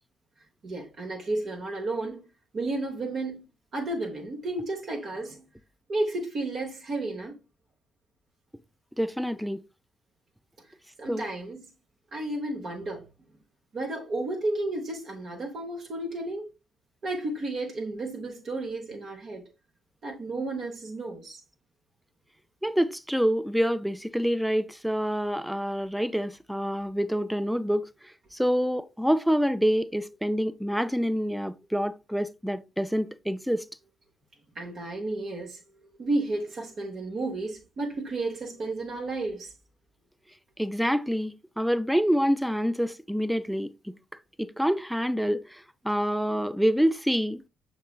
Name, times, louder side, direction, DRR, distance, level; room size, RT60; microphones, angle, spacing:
voice 1, 0.6-2.2 2.5-3.4 3.7-5.4 5.9-7.4 11.0-11.6 12.1-13.1 13.7-16.5 17.0-19.5 20.0-21.4 34.5-35.6 36.0-39.5, right 2 dB, 45° right, 0.8 m, -32 dB
voice 2, 9.0-9.6 11.1-11.3 22.6-27.9 28.3-33.7 40.6-43.9 44.4-47.5, equal, 5° right, 0.4 m, -27 dB
6.5 x 3.0 x 2.3 m
figure-of-eight pair, 40°, 0 cm